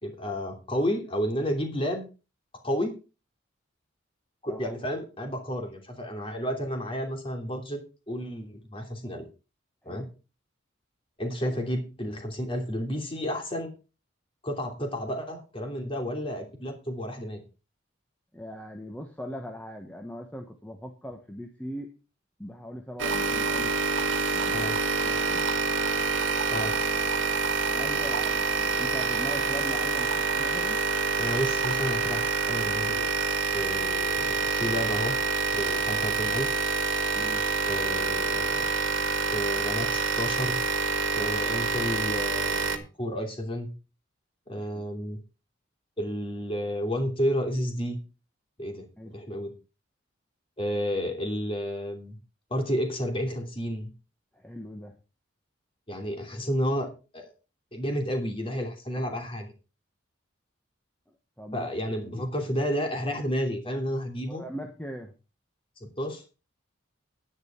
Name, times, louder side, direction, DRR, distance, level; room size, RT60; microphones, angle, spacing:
voice 1, 0.0-2.1 2.6-2.9 4.4-7.8 8.1-9.2 9.8-10.1 11.2-13.7 14.4-17.4 24.5-24.8 26.5-26.8 31.2-33.1 33.5-35.2 35.5-36.6 37.7-38.7 39.3-40.6 41.1-43.7 44.5-45.2 46.0-48.0 48.6-49.5 50.6-52.2 52.5-53.9 55.9-57.3 57.7-59.5 61.5-64.4 65.8-66.2, equal, 25° left, 3 dB, 2.9 m, -31 dB
voice 2, 18.3-21.9 22.4-23.8 24.3-24.6 25.0-25.6 27.7-30.8 37.1-37.5 41.2-41.3 44.5-44.9 49.0-49.2 54.3-55.0 58.9-59.2 61.4-61.7 64.3-65.1, equal, 10° left, 3 dB, 1.2 m, -40 dB
sound 1, 23.0-42.8, right 4 dB, 70° right, 1.5 m, -27 dB
10.5 x 10.0 x 4.5 m, 0.32 s
head